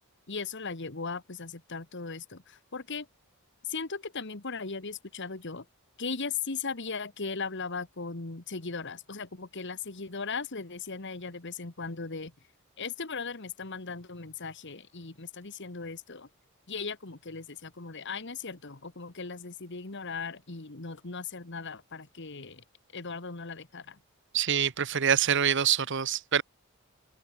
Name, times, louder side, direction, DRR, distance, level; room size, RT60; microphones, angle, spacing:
voice 1, 0.3-3.1 3.6-5.6 6.0-12.3 12.8-16.3 16.7-22.6 22.9-24.0, left 4 dB, 55° left, 1.6 m, -38 dB
voice 2, 24.3-26.4, right 8 dB, 55° right, 1.0 m, -25 dB
head